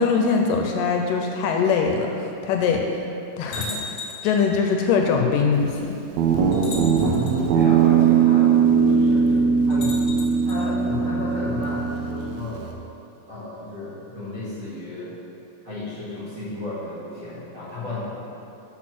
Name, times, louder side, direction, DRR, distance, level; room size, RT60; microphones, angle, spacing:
voice 1, 0.0-2.9 3.4-3.7 4.2-6.0, left 5 dB, 80° left, 2 dB, 2.1 m, -22 dB
sound 1, 3.5-4.4 5.5-5.6 6.5-7.4 9.7-10.6, left 2 dB, 55° left, 1.5 m, -36 dB
voice 2, 3.5-3.8 7.5-8.6 8.9-10.0 10.4-12.6 13.3-15.1 15.6-18.1, left 2 dB, 35° right, -11 dB, 2.3 m, -33 dB
Guitar, 6.2-12.7, right 6 dB, 80° right, 1.6 m, -20 dB
7.3 x 6.2 x 6.0 m, 2.8 s
omnidirectional pair, 4.0 m